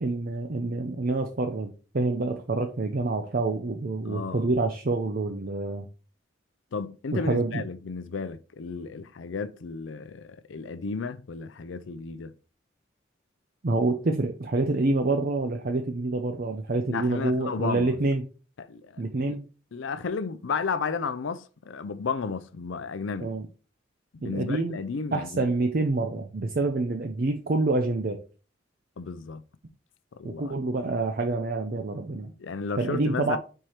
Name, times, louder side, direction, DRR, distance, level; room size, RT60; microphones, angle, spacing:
voice 1, 0.0-5.9 7.1-7.6 13.6-18.3 19.0-19.5 23.2-23.5 24.2-24.8 25.1-28.2 30.2-32.3 32.8-33.4, right 2 dB, 50° right, 0.6 m, -27 dB
voice 2, 4.1-4.5 6.7-12.3 16.9-18.0 18.6-19.0 19.3-19.4 19.7-23.3 24.1-25.5 29.0-29.4 30.1-30.6 32.4-33.4, left 5 dB, 85° left, 0.5 m, -33 dB
4.5 x 4.4 x 4.9 m
head